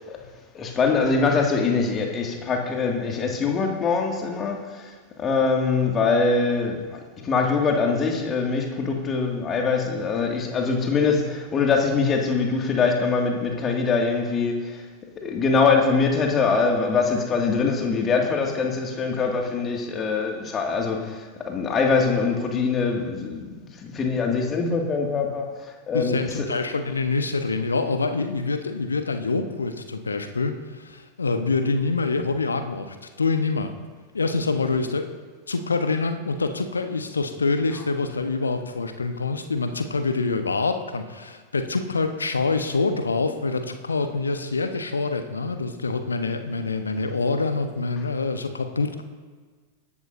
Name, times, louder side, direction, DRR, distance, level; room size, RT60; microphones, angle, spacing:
voice 1, 0.5-4.9 5.2-14.8 15.2-23.5 23.8-25.5 25.9-26.6 26.9-27.0, left 4 dB, 25° left, 1 dB, 2.1 m, -23 dB
voice 2, 25.9-33.7 34.1-35.2 35.5-49.0, left 3 dB, 75° left, 8 dB, 1.0 m, -26 dB
23.0 x 11.0 x 2.7 m, 1.5 s
figure-of-eight pair, 90°, 0 cm